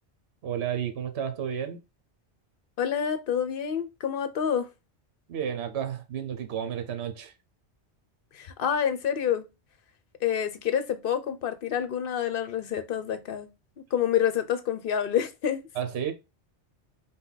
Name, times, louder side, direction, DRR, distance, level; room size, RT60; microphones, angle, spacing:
voice 1, 0.4-1.8 5.3-7.3 15.7-16.1, right 8 dB, 70° right, 1.0 m, -31 dB
voice 2, 2.8-4.7 8.3-9.5 10.2-13.5 13.9-15.7, left 9 dB, 55° left, 0.8 m, -28 dB
5.3 x 2.3 x 3.9 m
omnidirectional pair, 1.2 m